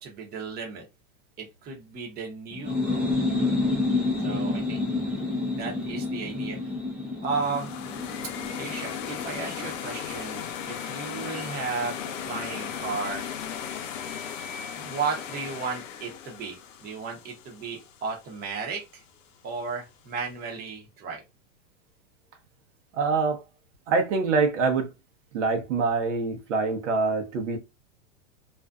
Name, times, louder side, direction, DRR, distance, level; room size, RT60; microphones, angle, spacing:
voice 1, 0.0-0.9 1.4-3.1 4.2-4.8 5.6-6.6 7.2-7.7 8.6-12.0 12.2-13.3 14.8-19.0 19.4-21.2, right 5 dB, 25° right, 0.8 m, -34 dB
sound 1, 2.5-10.0, left 2 dB, 5° right, 0.5 m, -29 dB
sound 2, 7.2-18.3, left 8 dB, 80° left, 0.7 m, -36 dB
voice 2, 22.9-23.4 23.9-24.9 25.3-27.6, right 4 dB, 70° right, 0.9 m, -25 dB
2.5 x 2.3 x 2.3 m
supercardioid pair, 135°, 38 cm